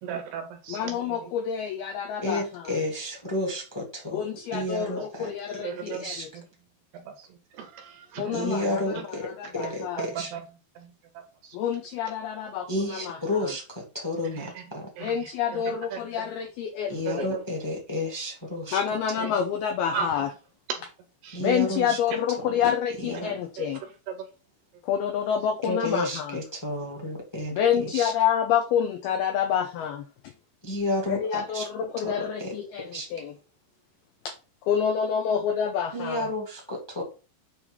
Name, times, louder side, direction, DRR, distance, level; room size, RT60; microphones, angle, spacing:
voice 1, 0.0-1.3 4.5-4.7 5.0-5.1 5.6-6.4 6.9-8.8 9.6-10.4 10.8-11.6 14.2-14.6 15.0-16.3 17.1-17.4 19.2-19.4 19.9-20.1 20.7-20.8 21.2-21.4 23.6-23.7 24.1-24.3, right 7 dB, 75° right, 2.6 m, -37 dB
voice 2, 0.7-2.7 4.1-6.3 8.2-10.1 11.5-13.2 15.0-17.3 18.7-20.3 21.4-23.8 24.8-26.4 27.5-30.1 31.1-33.3 34.3-34.4 34.6-36.3, left 8 dB, 85° left, 2.2 m, -28 dB
voice 3, 2.2-5.6 6.0-6.3 8.3-10.3 12.7-14.9 16.9-18.9 21.3-22.0 22.4-22.6 23.0-23.3 25.6-28.1 30.6-31.7 32.0-32.5 32.9-33.1 35.9-37.0, left 1 dB, 15° left, 0.9 m, -31 dB
8.5 x 3.4 x 5.5 m
omnidirectional pair, 5.5 m